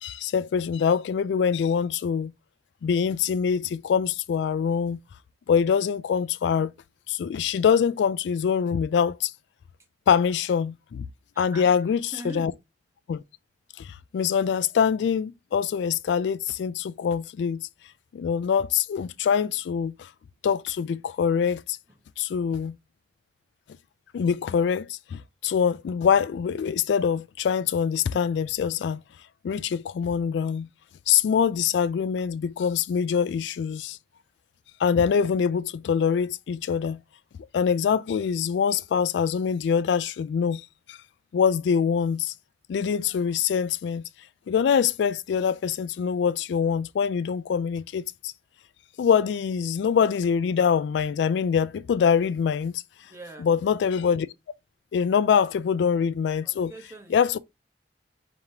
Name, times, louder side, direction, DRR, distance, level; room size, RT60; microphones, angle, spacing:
voice 1, 0.0-2.3 2.8-5.0 5.5-6.7 7.1-9.3 10.1-11.0 11.4-12.5 13.1-13.2 13.8-17.7 18.1-20.1 20.4-21.8 22.2-22.8 24.1-29.0 29.4-30.7 31.1-34.0 34.8-37.0 37.5-41.0 41.3-42.3 42.7-44.1 44.5-48.3 49.0-52.8 53.4-54.3 54.9-56.7 57.1-57.4, left 7 dB, 80° left, 0.3 m, -24 dB
voice 2, 11.3-11.7 12.1-12.5 21.9-22.0 53.0-53.5 56.4-57.2, right 2 dB, 15° right, 1.0 m, -42 dB
5.1 x 2.9 x 2.7 m
head